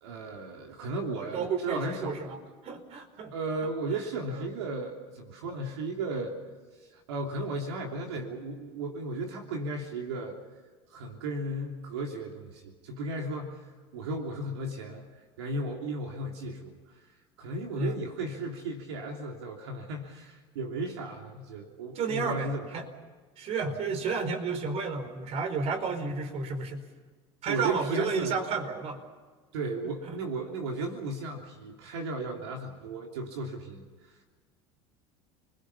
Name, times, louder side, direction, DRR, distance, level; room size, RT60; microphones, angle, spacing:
voice 1, 0.0-2.3 3.3-6.3 6.9-10.3 10.9-13.6 13.9-15.0 15.4-16.7 17.4-22.8 23.6-23.8 27.5-28.4 29.5-33.8, right 2 dB, 85° right, 1 dB, 3.1 m, -35 dB
voice 2, 1.2-3.3 4.3-4.4 17.8-18.0 21.9-22.9 23.4-26.8 27.4-29.0 30.0-30.2, right 4 dB, 50° right, 7 dB, 4.7 m, -32 dB
29.0 x 22.0 x 5.8 m, 1.4 s
supercardioid pair, 95°, 14 cm